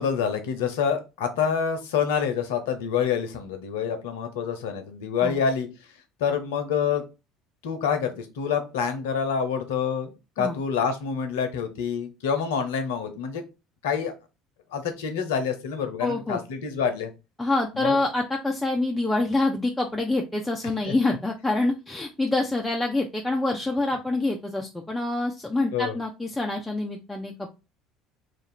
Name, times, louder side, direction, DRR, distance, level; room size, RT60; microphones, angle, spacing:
voice 1, 0.0-5.7 6.2-7.0 7.6-13.4 13.8-14.1 14.7-17.1 17.8-18.0 20.9-21.0 25.7-26.0, left 7 dB, 70° left, 7 dB, 0.7 m, -27 dB
voice 2, 16.0-16.4 17.4-27.5, left 2 dB, 10° left, 1 dB, 0.6 m, -26 dB
3.1 x 2.5 x 4.2 m, 0.28 s
figure-of-eight pair, 60°, 0 cm